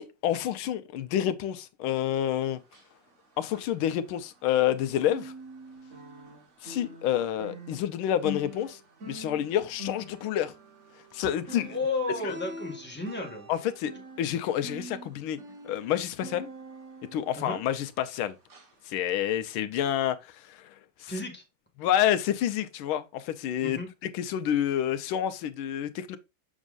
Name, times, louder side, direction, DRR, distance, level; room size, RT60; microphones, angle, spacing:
voice 1, 0.0-2.6 3.4-5.3 6.6-8.8 9.1-10.5 11.1-11.8 12.2-12.3 13.5-15.4 15.6-16.5 17.1-18.4 18.9-20.7 21.0-21.1 21.8-26.2, left 11 dB, 85° left, 1.5 m, -28 dB
sound 1, 2.6-4.7 5.0-18.1 18.5-18.7 19.2-19.3, left 1 dB, 45° right, 1.3 m, -44 dB
voice 2, 11.7-13.5 17.4-17.6 21.1-21.4 23.6-23.9, left 3 dB, 5° left, 1.3 m, -33 dB
6.3 x 6.2 x 2.4 m
omnidirectional pair, 2.2 m